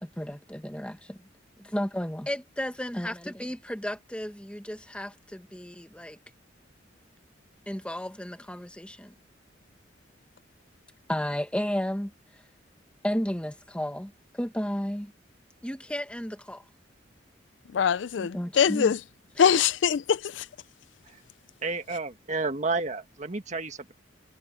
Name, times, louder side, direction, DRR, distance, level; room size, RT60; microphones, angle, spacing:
voice 1, 0.0-1.2 1.6-6.2 7.7-9.1 11.1-12.1 13.0-15.1 15.6-16.6 18.2-19.0, equal, 5° left, 1.4 m, -33 dB
voice 2, 17.7-19.0 19.4-20.4, left 7 dB, 75° left, 0.4 m, -23 dB
voice 3, 21.6-23.9, right 3 dB, 40° right, 1.6 m, -31 dB
head